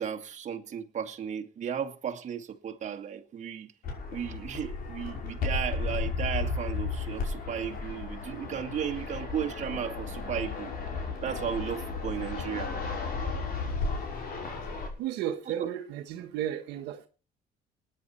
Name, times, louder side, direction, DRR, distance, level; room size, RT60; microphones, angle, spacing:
voice 1, 0.0-3.7 4.1-10.7 11.2-12.7 15.5-15.7, right 8 dB, 45° right, 2.1 m, -35 dB
Fixed-wing aircraft airplane, 3.8-14.9, left 4 dB, 60° left, 5.8 m, -34 dB
voice 2, 15.0-17.1, right 11 dB, 90° right, 1.4 m, -34 dB
20.0 x 10.0 x 4.4 m
cardioid pair, 110°, 17 cm